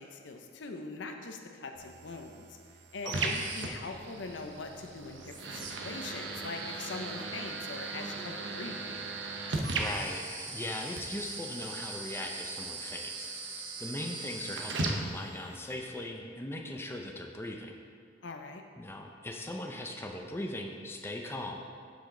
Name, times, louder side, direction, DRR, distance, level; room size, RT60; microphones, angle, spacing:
voice 1, 0.0-2.4 2.9-8.9 18.2-18.6, left 3 dB, 90° left, 4 dB, 0.7 m, -42 dB
sound 1, 1.7-15.7, right 3 dB, 80° right, 0.8 m, -38 dB
voice 2, 3.0-3.4 9.8-13.3 13.8-17.7 18.8-21.6, left 1 dB, 15° left, 2 dB, 0.5 m, -39 dB
11.0 x 5.1 x 3.8 m, 2.1 s
head